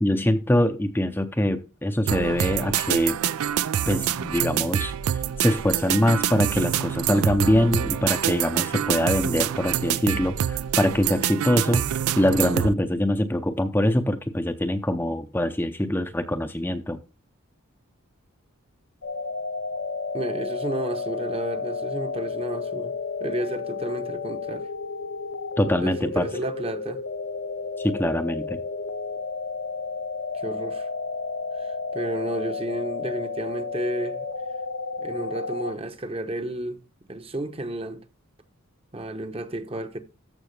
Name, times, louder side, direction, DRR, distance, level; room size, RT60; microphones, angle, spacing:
voice 1, 0.0-3.2 3.9-4.9 5.4-17.0 25.6-26.3 27.8-28.6, left 1 dB, 10° left, 0.5 m, -23 dB
sound 1, 2.1-12.7, right 10 dB, 85° right, 0.4 m, -26 dB
sound 2, 19.0-35.7, left 4 dB, 60° left, 0.8 m, -32 dB
voice 2, 20.1-22.9 23.2-24.7 25.7-27.0 30.3-30.9 31.6-31.7 31.9-34.3 35.0-36.8 37.1-38.0 38.9-40.0, right 1 dB, 25° right, 0.9 m, -31 dB
13.5 x 6.0 x 3.3 m
head